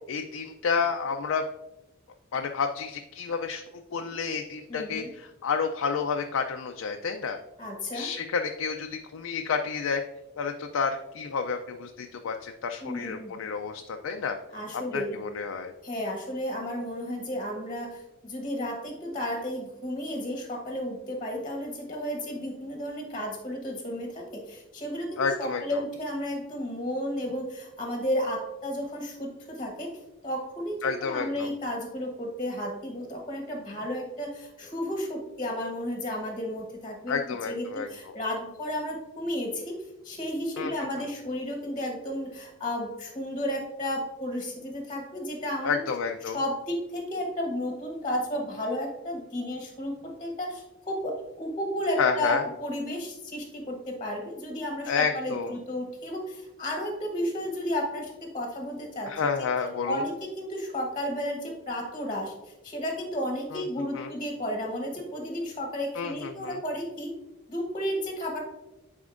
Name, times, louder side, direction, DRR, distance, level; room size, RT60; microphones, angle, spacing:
voice 1, 0.1-1.4 2.3-3.6 3.9-7.4 7.9-10.0 10.4-14.4 14.9-15.7 25.2-25.8 30.8-31.5 37.1-38.2 40.6-40.7 45.6-46.4 52.0-52.4 54.9-55.6 59.1-60.0 63.5-63.6 63.9-64.1 65.9-66.6, left 5 dB, 80° left, 4 dB, 0.4 m, -30 dB
voice 2, 4.7-5.1 7.6-8.1 12.8-13.4 14.5-15.2 15.8-29.9 30.2-37.2 37.5-39.8 40.0-45.8 46.3-51.1 51.4-59.1 59.8-67.1 67.5-68.4, equal, 25° left, 1 dB, 1.0 m, -33 dB
9.6 x 4.3 x 2.5 m, 0.98 s
head